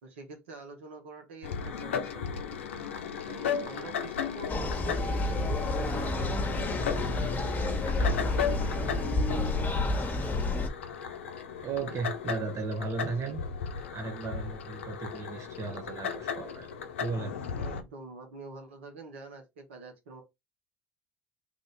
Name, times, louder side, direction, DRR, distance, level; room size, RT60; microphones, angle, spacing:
voice 1, 0.0-2.6 3.3-7.8 9.0-9.1 17.6-20.2, right 3 dB, 85° right, 1.0 m, -46 dB
sound 1, 1.4-17.8, left 7 dB, 90° left, 0.5 m, -36 dB
sound 2, 4.5-10.7, left 2 dB, 30° left, 1.0 m, -29 dB
voice 2, 11.6-13.4 13.9-16.7 17.0-17.4, right 4 dB, 50° right, 0.8 m, -35 dB
3.4 x 2.6 x 3.3 m
hypercardioid pair, 65°, 6 cm